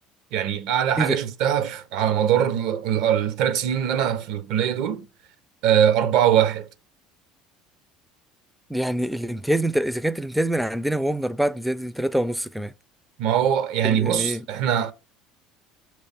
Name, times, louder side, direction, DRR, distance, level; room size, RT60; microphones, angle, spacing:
voice 1, 0.3-5.1 5.6-6.7 13.2-14.9, right 9 dB, 70° right, 0.6 m, -22 dB
voice 2, 8.7-12.7 13.8-14.4, right 1 dB, ahead, 0.3 m, -25 dB
6.3 x 3.1 x 5.3 m
supercardioid pair, 90°, 0 cm